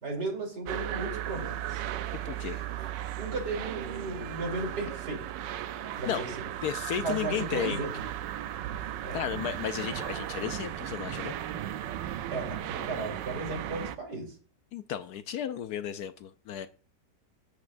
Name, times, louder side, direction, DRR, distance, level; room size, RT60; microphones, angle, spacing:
voice 1, 0.0-1.8 3.2-5.2 6.0-6.3 7.0-7.9 9.0-9.2 12.3-14.3, right 3 dB, 65° right, 3.8 m, -35 dB
sound 1, 0.7-14.0, right 11 dB, 90° right, 1.3 m, -36 dB
voice 2, 2.2-2.6 6.1-6.2 6.6-7.8 9.1-11.3 14.7-16.7, left 9 dB, 70° left, 1.0 m, -34 dB
13.0 x 8.2 x 2.5 m
omnidirectional pair, 1.9 m